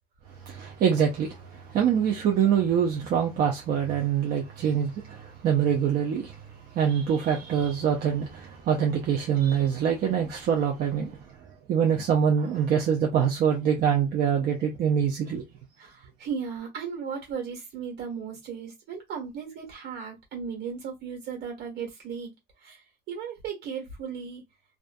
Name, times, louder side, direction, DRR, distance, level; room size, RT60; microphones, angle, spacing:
voice 1, 0.4-6.4 6.7-11.2 11.7-15.4, right 8 dB, 65° right, 0.6 m, -25 dB
voice 2, 15.8-22.3 22.6-22.8 23.1-24.4, right 6 dB, 80° right, 1.4 m, -36 dB
2.5 x 2.4 x 2.3 m
cardioid pair, 110°, 17 cm